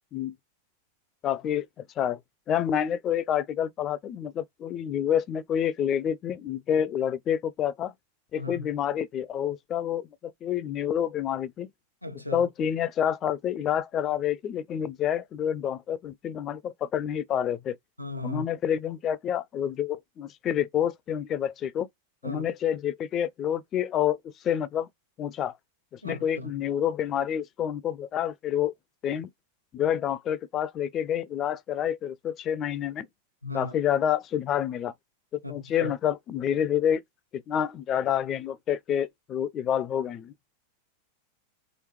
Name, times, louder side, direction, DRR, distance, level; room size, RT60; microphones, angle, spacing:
voice 1, 1.2-1.7 2.0-2.2 2.5-7.9 8.3-11.7 12.3-17.8 18.2-21.9 22.2-24.9 25.2-25.5 25.9-28.7 29.0-29.3 29.7-33.1 33.5-34.9 35.3-37.0 37.3-40.3, left 9 dB, 30° left, 0.3 m, -28 dB
voice 2, 8.4-8.7 12.0-12.4 18.0-18.5 22.2-22.5 26.0-26.5 33.4-33.7 35.4-35.9, left 2 dB, 90° right, 0.7 m, -36 dB
3.2 x 3.1 x 3.0 m
figure-of-eight pair, 90°, 0 cm